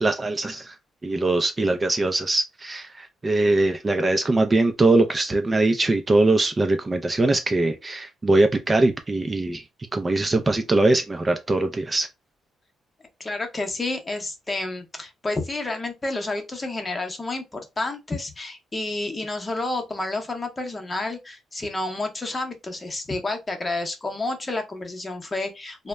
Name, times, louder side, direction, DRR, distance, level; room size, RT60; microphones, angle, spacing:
voice 1, 0.0-0.7 1.0-9.6 9.9-12.1, right 2 dB, 25° right, 0.4 m, -22 dB
voice 2, 13.2-25.9, left 2 dB, 25° left, 0.8 m, -30 dB
2.1 x 2.0 x 3.4 m
cardioid pair, 90°, 0 cm